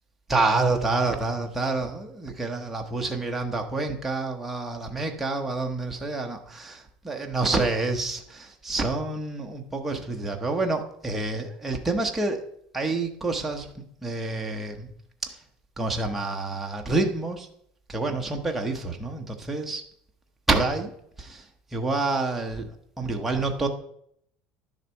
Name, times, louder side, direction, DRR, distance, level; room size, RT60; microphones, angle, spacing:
voice 1, 0.3-12.4 12.7-14.9 15.2-15.4 15.8-17.5 17.9-19.8 20.5-20.9 21.2-21.5 21.7-23.7, right 3 dB, 5° right, 1 dB, 1.0 m, -28 dB
10.5 x 6.6 x 4.5 m, 0.70 s
cardioid pair, 165°, 3 cm